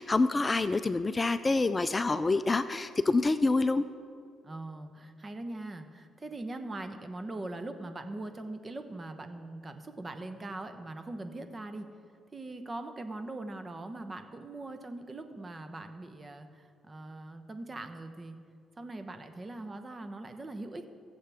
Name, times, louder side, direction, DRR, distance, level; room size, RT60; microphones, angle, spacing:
voice 1, 0.0-3.8, left 3 dB, 25° left, 12 dB, 0.4 m, -27 dB
voice 2, 4.4-11.9 12.3-18.4 18.8-20.9, right 2 dB, 25° right, 7 dB, 1.0 m, -41 dB
20.5 x 7.6 x 3.5 m, 2.3 s
cardioid pair, 90°, 0 cm